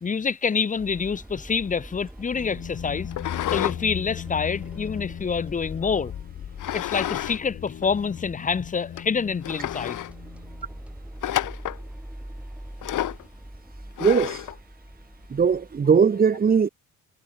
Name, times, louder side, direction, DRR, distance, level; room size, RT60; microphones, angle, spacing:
voice 1, 0.0-3.1 3.5-6.1 6.7-10.0, left 5 dB, 25° left, 1.0 m, -27 dB
sound 1, 0.7-7.5 7.8-8.1 8.5-8.6 9.0-15.8, right 1 dB, 5° right, 6.0 m, -44 dB
sound 2, 2.2-10.8, left 9 dB, 50° left, 4.6 m, -38 dB
sound 3, 3.1-3.8 4.2-5.6 6.6-7.4 7.7-7.8 8.4-8.5 9.0-9.1 9.4-10.1 11.2-11.8 12.8-13.2 14.0-14.5, left 13 dB, 70° left, 1.9 m, -30 dB
voice 2, 14.0-14.4 15.3-16.7, right 6 dB, 30° right, 1.7 m, -19 dB
cardioid pair, 160°, 32 cm